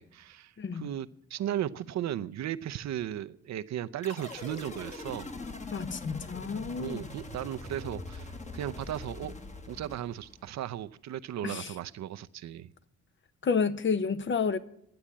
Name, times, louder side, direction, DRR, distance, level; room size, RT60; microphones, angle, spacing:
voice 1, 0.0-5.3 6.8-9.3 9.6-12.7, right 11 dB, 65° right, 0.6 m, -36 dB
voice 2, 0.6-0.9 5.7-7.0 11.4-11.7 13.4-14.6, left 5 dB, 40° left, 0.8 m, -30 dB
sound 1, 4.0-10.5, left 3 dB, 25° left, 1.3 m, -42 dB
11.5 x 8.7 x 8.5 m
cardioid pair, 90°, 30 cm